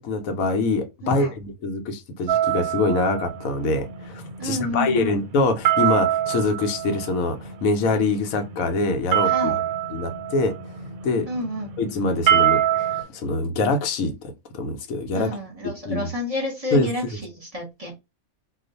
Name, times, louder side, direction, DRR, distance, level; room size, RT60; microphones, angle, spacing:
voice 1, 0.0-9.5 9.9-10.5 11.0-11.3 11.8-15.4 15.9-16.1 16.7-16.9, left 3 dB, 75° left, 1.0 m, -24 dB
voice 2, 1.0-1.3 4.4-5.2 9.2-9.6 11.3-11.7 15.1-17.9, left 1 dB, 30° right, 0.9 m, -30 dB
sound 1, 2.3-13.0, right 11 dB, 85° right, 1.1 m, -26 dB
2.4 x 2.3 x 3.9 m
omnidirectional pair, 1.5 m